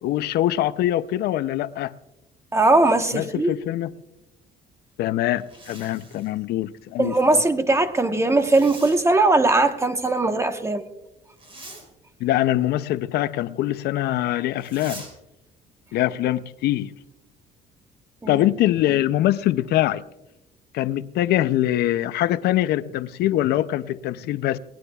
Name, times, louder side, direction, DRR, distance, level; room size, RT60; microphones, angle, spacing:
voice 1, 0.0-1.9 3.1-3.9 5.0-7.4 12.2-15.1 15.9-16.9 18.3-20.0 20.7-24.6, left 13 dB, 70° left, 0.5 m, -23 dB
voice 2, 2.5-3.5 7.0-10.8 18.2-18.4, right 2 dB, 15° right, 1.0 m, -19 dB
Zipper (clothing), 5.3-6.4 8.4-9.0 11.3-11.9 14.6-15.1, right 2 dB, 35° right, 4.3 m, -42 dB
22.0 x 18.0 x 2.3 m
cardioid pair, 110°, 17 cm